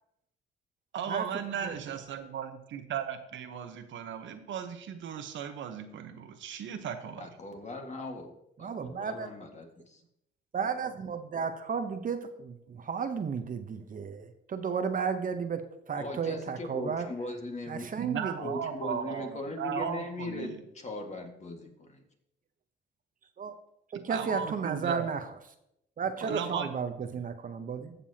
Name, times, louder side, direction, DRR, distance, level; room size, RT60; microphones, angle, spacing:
voice 1, 0.9-7.3 18.0-20.6 24.1-25.1 26.2-26.7, right 8 dB, 75° right, 8 dB, 1.0 m, -36 dB
voice 2, 7.2-8.3 8.6-10.0 15.9-17.9 18.4-22.0, left 2 dB, 35° left, 3 dB, 1.8 m, -39 dB
voice 3, 8.6-9.3 10.5-17.1 17.7-18.3 23.4-23.6 23.9-25.2 26.0-27.9, right 6 dB, 45° right, 8 dB, 0.8 m, -33 dB
15.0 x 6.9 x 2.8 m, 0.80 s
cardioid pair, 90°, 20 cm